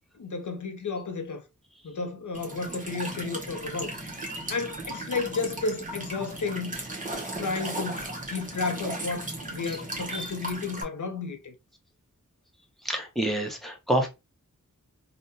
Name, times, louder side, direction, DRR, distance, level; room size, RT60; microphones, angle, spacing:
voice 1, 0.1-1.4 1.8-4.2 4.5-6.8 7.4-11.5, left 4 dB, 70° left, 0.6 m, -32 dB
Walk footsteps / Chirp tweet / Stream, 2.3-10.8, right 1 dB, 25° right, 1.0 m, -36 dB
voice 2, 12.8-14.1, right 1 dB, ahead, 0.8 m, -28 dB
3.5 x 2.2 x 2.6 m
wide cardioid pair, 65°, 31 cm